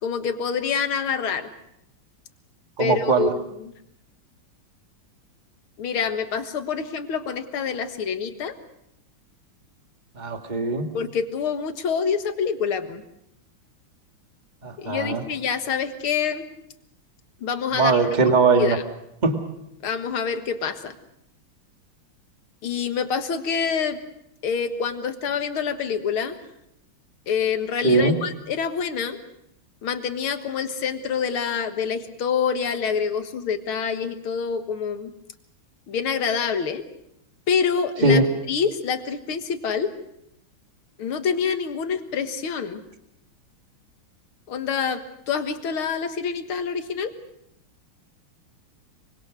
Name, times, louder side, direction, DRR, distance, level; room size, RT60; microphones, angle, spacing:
voice 1, 0.0-1.5 2.8-3.7 5.8-8.5 10.9-13.0 14.8-16.5 17.4-18.2 18.5-18.8 19.8-20.9 22.6-24.0 24.4-26.4 27.3-29.2 29.8-35.1 35.9-36.8 37.5-38.2 38.5-39.9 41.0-42.8 44.5-47.1, left 6 dB, 80° left, 8 dB, 2.4 m, -26 dB
voice 2, 2.8-3.3 10.2-10.9 14.6-15.2 17.7-18.8 19.2-19.4 27.8-28.1 38.0-38.3, right 3 dB, 20° right, 5 dB, 2.0 m, -20 dB
24.5 x 24.5 x 6.3 m, 0.80 s
omnidirectional pair, 2.3 m